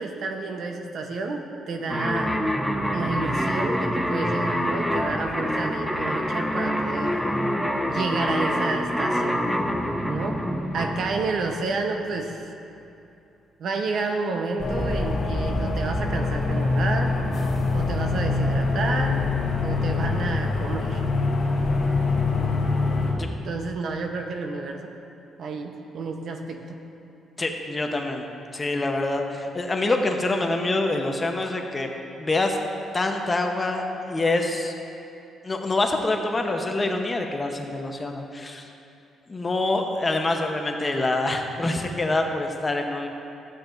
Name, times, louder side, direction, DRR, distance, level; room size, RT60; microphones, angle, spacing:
voice 1, 0.0-2.4 2.9-7.2 7.9-9.4 10.1-10.4 10.7-12.4 13.6-17.1 17.7-19.2 19.6-21.0 23.4-24.9 25.4-26.8, right 3 dB, 65° right, 4 dB, 0.9 m, -30 dB
sound 1, 1.9-12.0, equal, ahead, 0.6 m, -26 dB
sound 2, 14.6-23.1, left 3 dB, 50° left, 1.8 m, -24 dB
voice 2, 27.4-28.2 28.5-31.9 32.2-32.6 32.9-34.7 35.4-38.7 39.3-43.1, left 2 dB, 25° left, 3 dB, 0.9 m, -25 dB
13.0 x 8.9 x 2.6 m, 2.7 s
cardioid pair, 90°, 0 cm